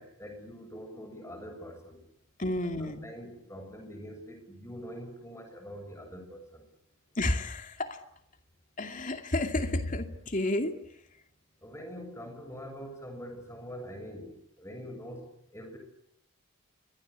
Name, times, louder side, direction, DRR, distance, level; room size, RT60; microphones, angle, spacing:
voice 1, 0.0-2.0 2.6-6.7 11.6-15.8, equal, 15° left, 5 dB, 7.0 m, -44 dB
voice 2, 2.4-3.0 7.2-8.0 8.8-10.7, left 1 dB, 35° left, 7 dB, 2.5 m, -30 dB
29.0 x 23.5 x 8.3 m, 0.75 s
head